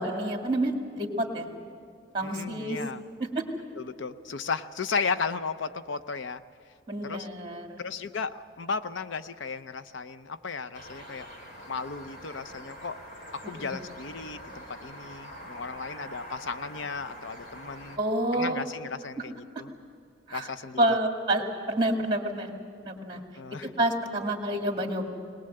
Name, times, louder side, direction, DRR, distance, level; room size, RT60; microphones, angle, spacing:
voice 1, 0.0-1.5 2.1-2.8 3.2-3.4 6.9-7.8 13.5-13.8 18.0-18.6 19.2-19.3 20.3-20.5 20.8-22.5 22.8-23.2 23.6-25.1, right 1 dB, 25° right, 3 dB, 2.2 m, -28 dB
voice 2, 2.2-3.0 3.8-6.4 7.0-7.3 7.8-11.3 11.7-13.0 13.3-18.0 18.3-19.7 20.3-21.0 23.3-23.7, left 5 dB, 85° left, 12 dB, 0.7 m, -35 dB
sound 1, 10.7-18.0, equal, 45° left, 3.1 m, -45 dB
21.0 x 20.0 x 7.8 m, 2.4 s
head